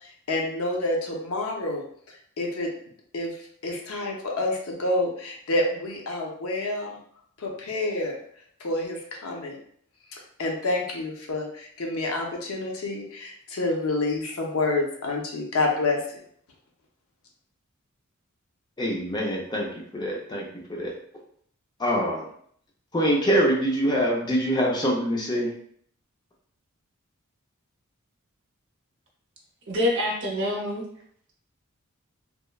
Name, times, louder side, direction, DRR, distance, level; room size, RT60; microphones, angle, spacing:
voice 1, 0.0-2.7 3.1-3.3 3.6-7.0 7.4-8.2 8.6-9.6 10.1-16.2, left 2 dB, 75° left, 0 dB, 0.6 m, -28 dB
voice 2, 18.8-21.0 21.8-22.2 22.9-25.5, equal, 20° left, -1 dB, 0.5 m, -25 dB
voice 3, 29.7-30.8, left 1 dB, 60° right, -1 dB, 0.7 m, -26 dB
2.9 x 2.1 x 2.2 m, 0.63 s
head